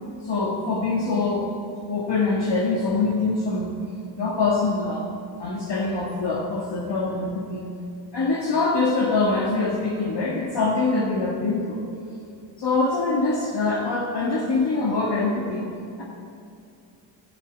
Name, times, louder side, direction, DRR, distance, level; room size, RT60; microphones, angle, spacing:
voice 1, 0.2-1.5 1.9-3.8 4.2-5.1 5.4-7.7 8.1-11.8 12.6-15.7 16.0-16.1, left 3 dB, 60° left, -2 dB, 1.9 m, -24 dB
12.0 x 10.5 x 8.3 m, 2.5 s
cardioid pair, 65°, 47 cm